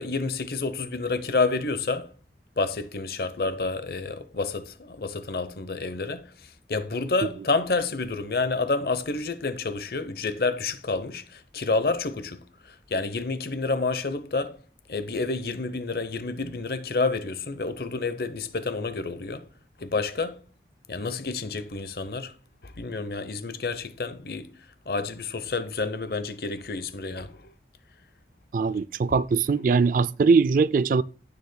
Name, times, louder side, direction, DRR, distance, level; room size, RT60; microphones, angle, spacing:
voice 1, 0.0-2.1 2.6-14.6 14.9-19.5 19.8-20.4 20.9-22.3 22.6-24.5 24.9-27.5, left 3 dB, 55° left, 0.8 m, -29 dB
voice 2, 28.5-31.0, right 4 dB, 50° right, 0.3 m, -21 dB
16.5 x 6.7 x 2.2 m
head